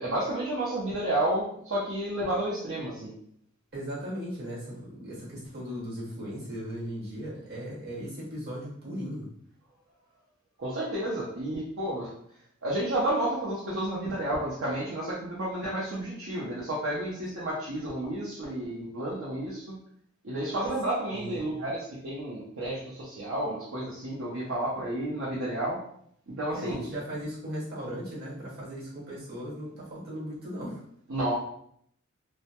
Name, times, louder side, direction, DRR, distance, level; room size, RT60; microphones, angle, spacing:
voice 1, 0.0-3.1 10.6-12.1 12.6-19.8 20.2-25.8 26.3-26.8 31.1-31.3, right 1 dB, 65° right, -7 dB, 0.6 m, -31 dB
voice 2, 3.7-9.3 21.1-21.5 26.5-30.9, equal, 50° right, -7 dB, 1.1 m, -37 dB
2.1 x 2.1 x 2.8 m, 0.67 s
head